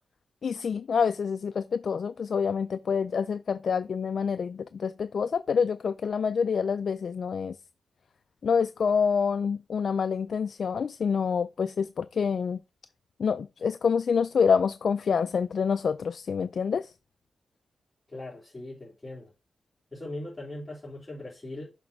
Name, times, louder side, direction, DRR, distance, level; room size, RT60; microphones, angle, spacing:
voice 1, 0.4-7.5 8.4-12.6 13.2-16.9, left 6 dB, 65° left, 0.3 m, -27 dB
voice 2, 18.1-19.3 19.9-21.7, left 1 dB, 15° left, 3.3 m, -40 dB
7.1 x 3.2 x 5.3 m
cardioid pair, 75°, 0 cm